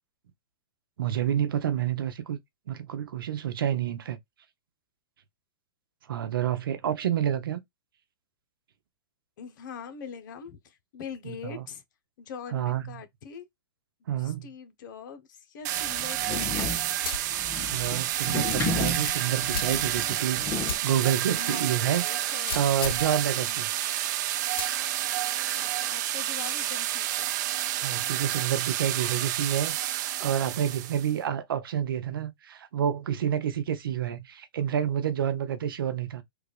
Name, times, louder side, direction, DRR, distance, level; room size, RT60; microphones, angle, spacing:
voice 1, 1.0-2.4 2.7-4.2 6.1-7.6 11.2-11.6 12.5-12.9 14.1-14.5 17.7-22.0 22.5-23.7 27.8-36.2, right 10 dB, 75° right, 0.8 m, -29 dB
voice 2, 9.4-11.8 12.2-13.5 14.0-16.9 21.4-22.7 23.4-23.6 25.5-27.3, left 6 dB, 60° left, 1.0 m, -43 dB
sound 1, 15.6-31.1, right 13 dB, 55° right, 0.5 m, -30 dB
sound 2, 15.8-20.8, left 4 dB, 20° left, 0.8 m, -34 dB
sound 3, 17.0-17.4 17.8-17.9 18.5-20.2 20.7-20.9 21.3-21.4 22.4-23.1 24.6-24.9, left 7 dB, 85° left, 0.4 m, -35 dB
3.5 x 2.4 x 3.3 m
hypercardioid pair, 125°, 12 cm